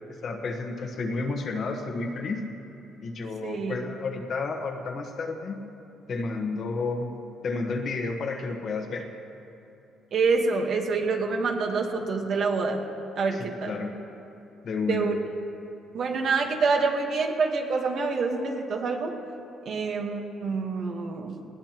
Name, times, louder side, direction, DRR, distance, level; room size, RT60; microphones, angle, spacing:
voice 1, 0.2-2.4 3.0-5.6 6.1-7.1 7.4-9.1 13.3-14.0 14.6-15.1, left 3 dB, 40° left, 4 dB, 1.2 m, -31 dB
voice 2, 3.4-3.8 10.1-12.8 13.1-13.7 14.9-15.2 15.9-19.1 19.6-21.4, right 4 dB, 45° right, 3 dB, 1.3 m, -26 dB
20.0 x 17.5 x 3.0 m, 2.8 s
cardioid pair, 165°, 0 cm